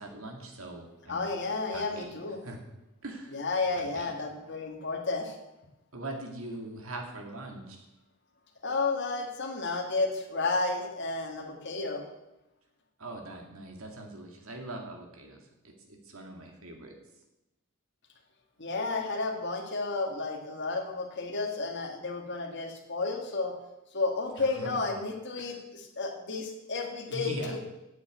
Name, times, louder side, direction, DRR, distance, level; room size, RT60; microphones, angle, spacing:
voice 1, 0.0-1.3 1.7-2.6 3.0-3.4 3.8-4.1 5.9-7.9 13.0-16.9 24.4-24.8 25.4-25.6 27.1-27.6, right 2 dB, 70° right, 3 dB, 2.2 m, -42 dB
voice 2, 1.1-2.4 3.3-5.3 8.6-12.0 18.6-23.5 23.9-27.7, left 3 dB, 50° left, 3 dB, 1.8 m, -32 dB
8.5 x 7.1 x 8.1 m, 0.94 s
head